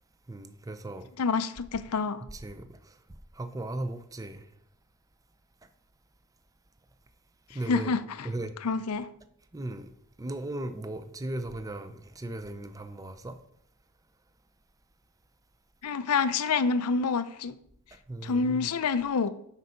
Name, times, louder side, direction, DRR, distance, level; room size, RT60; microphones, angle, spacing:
voice 1, 0.3-1.1 2.3-2.7 3.4-4.4 7.5-7.9 8.2-8.5 9.5-9.9 10.2-13.4 18.1-18.7, right 2 dB, 15° right, 0.5 m, -37 dB
voice 2, 1.2-2.2 7.7-8.3 8.6-9.1 15.8-17.5 18.2-19.3, left 4 dB, 85° left, 0.6 m, -27 dB
8.1 x 5.6 x 5.0 m
head